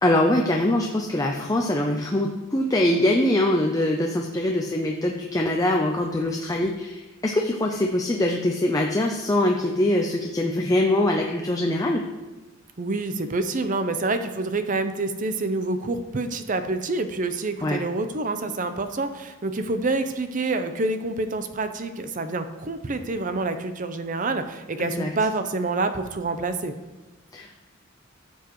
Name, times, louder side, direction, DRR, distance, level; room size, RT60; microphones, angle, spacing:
voice 1, 0.0-12.0 17.6-17.8 24.8-25.1 27.3-27.6, left 1 dB, 15° left, 1 dB, 0.5 m, -23 dB
voice 2, 12.8-26.7, right 3 dB, 40° right, 9 dB, 0.6 m, -27 dB
13.0 x 7.1 x 3.1 m, 1.1 s
head